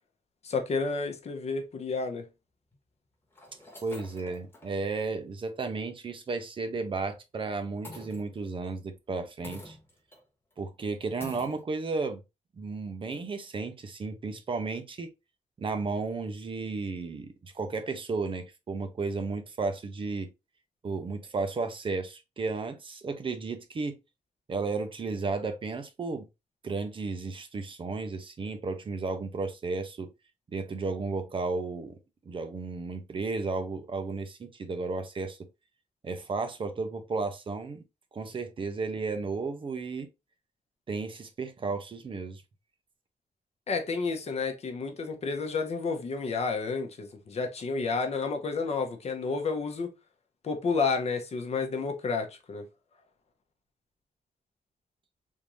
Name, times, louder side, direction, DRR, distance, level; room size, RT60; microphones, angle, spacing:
voice 1, 0.4-2.2 43.7-49.9 50.4-52.6, left 4 dB, 50° left, 0.8 m, -30 dB
sound 1, 1.8-1.9 2.7-2.8 3.3-4.7 5.2-5.3 5.7-5.8 7.8-8.7 9.4-10.2 10.5-10.6 11.2-11.6, left 1 dB, 15° left, 1.3 m, -46 dB
voice 2, 3.8-9.8 10.6-12.2 12.6-15.1 15.6-20.3 20.8-24.0 24.5-26.3 26.6-30.1 30.5-32.0 32.3-35.4 36.0-37.8 38.1-40.1 40.9-42.4, right 4 dB, 40° right, 0.6 m, -33 dB
3.6 x 2.6 x 3.0 m
wide cardioid pair, 165°, 13 cm